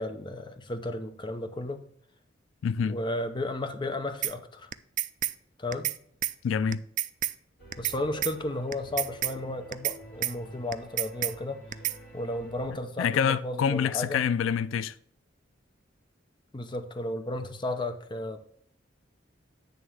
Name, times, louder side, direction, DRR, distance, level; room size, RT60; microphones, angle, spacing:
voice 1, 0.0-1.8 2.8-4.7 5.6-5.9 7.8-11.6 12.1-14.2 16.5-18.4, left 1 dB, 25° left, 0.6 m, -33 dB
voice 2, 2.6-3.0 6.4-6.8 13.0-14.9, left 7 dB, 85° left, 0.3 m, -26 dB
sound 1, 4.2-4.3 4.7-5.3 5.7-6.0 6.2-6.3 6.7-7.3 7.7-8.3 8.7-9.3 9.7-10.0 10.2-10.3 10.7-11.3 11.7-12.0, right 14 dB, 40° right, 0.3 m, -29 dB
sound 2, 7.6-12.7, equal, 50° left, 2.7 m, -49 dB
9.2 x 3.5 x 6.1 m
head